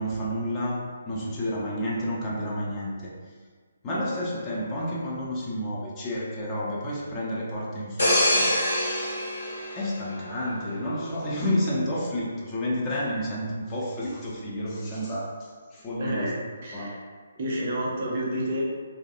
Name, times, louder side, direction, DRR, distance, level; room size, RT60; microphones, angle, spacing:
voice 1, 0.0-3.2 3.8-8.5 9.7-16.3 16.7-17.0, equal, 20° left, -6 dB, 0.5 m, -30 dB
sound 1, 8.0-10.7 11.1-11.3, equal, 65° left, 1.4 m, -25 dB
voice 2, 16.0-16.3 16.6-17.0 17.4-18.6, equal, 45° right, -3 dB, 0.5 m, -29 dB
2.5 x 2.2 x 2.4 m, 1.5 s
figure-of-eight pair, 135°, 0 cm